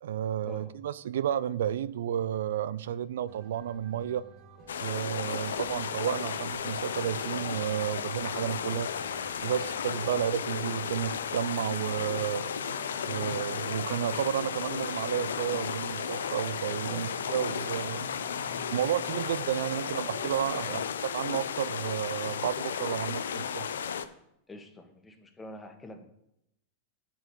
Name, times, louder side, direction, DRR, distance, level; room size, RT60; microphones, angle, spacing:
voice 1, 0.0-4.2 4.8-8.9 9.4-12.4 13.1-18.1 18.7-23.7, right 10 dB, 65° right, 0.4 m, -32 dB
sound 1, 3.3-20.8, right 5 dB, 45° right, 1.5 m, -49 dB
sound 2, 4.7-24.1, left 7 dB, 75° left, 0.7 m, -34 dB
voice 2, 24.5-26.0, left 1 dB, 15° left, 1.7 m, -46 dB
7.7 x 5.8 x 7.0 m
figure-of-eight pair, 90°, 0 cm